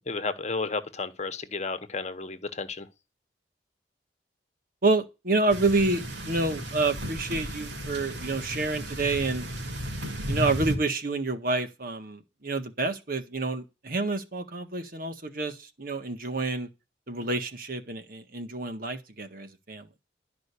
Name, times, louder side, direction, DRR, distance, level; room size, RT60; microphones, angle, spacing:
voice 1, 0.1-2.9, left 4 dB, 40° left, 1.1 m, -32 dB
voice 2, 4.8-9.5 10.3-16.7 17.1-19.9, right 3 dB, 55° right, 1.7 m, -28 dB
sound 1, 5.5-10.8, right 1 dB, 90° right, 2.9 m, -34 dB
12.5 x 5.2 x 8.3 m
head